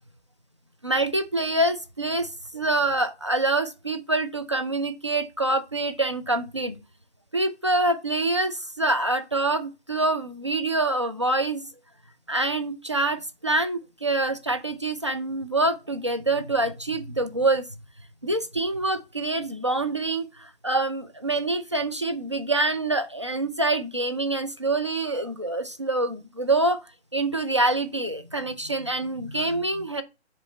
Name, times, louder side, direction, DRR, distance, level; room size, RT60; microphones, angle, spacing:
voice 1, 0.8-6.8 7.3-11.7 12.3-17.6 18.2-26.8 27.1-30.0, right 2 dB, 25° right, 0.4 m, -26 dB
7.5 x 3.0 x 4.2 m
figure-of-eight pair, 155°, 34 cm